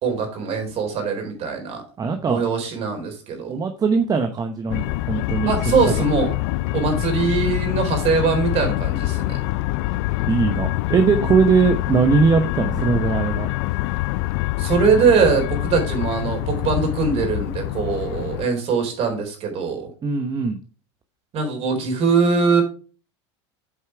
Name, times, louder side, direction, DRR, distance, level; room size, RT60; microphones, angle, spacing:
voice 1, 0.0-1.8 2.3-3.5 5.5-6.3 6.7-9.2 14.6-19.9 21.3-22.6, right 5 dB, 45° right, 3 dB, 4.2 m, -21 dB
voice 2, 2.0-2.4 3.5-5.5 5.9-6.0 6.9-7.0 10.3-13.5 20.0-20.6, right 5 dB, 25° right, 6 dB, 1.0 m, -20 dB
sound 1, 4.7-18.5, left 18 dB, 65° left, 0.5 m, -25 dB
8.4 x 5.5 x 4.7 m, 0.37 s
supercardioid pair, 110°, 15 cm